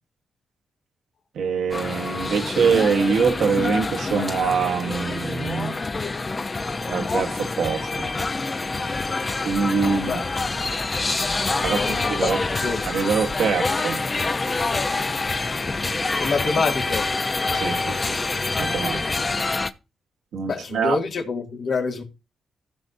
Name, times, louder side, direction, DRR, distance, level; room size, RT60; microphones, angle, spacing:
voice 1, 1.3-5.8 6.9-8.1 9.4-10.2 11.6-12.4 12.8-14.0 17.5-18.0 18.6-19.0 20.3-21.0, right 6 dB, 80° right, 1.3 m, -24 dB
sound 1, 1.7-19.7, left 3 dB, 35° left, 0.8 m, -26 dB
voice 2, 9.8-10.3 11.6-13.1 16.2-17.1 20.5-22.0, left 4 dB, 70° left, 2.3 m, -27 dB
16.0 x 6.0 x 2.7 m
cardioid pair, 55°, 0 cm